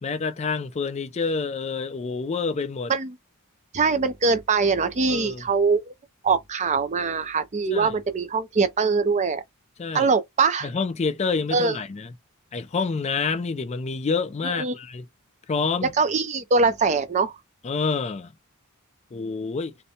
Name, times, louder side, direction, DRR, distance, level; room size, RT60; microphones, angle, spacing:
voice 1, 0.0-2.9 5.1-5.4 7.7-7.9 9.8-10.1 10.6-12.1 12.5-15.1 15.5-15.9 17.6-18.4 19.1-19.8, left 4 dB, 30° left, 0.3 m, -28 dB
voice 2, 3.7-5.9 6.2-9.4 9.9-10.7 11.5-11.8 14.4-14.7 16.0-17.4, right 4 dB, 30° right, 0.5 m, -22 dB
2.6 x 2.1 x 2.8 m
head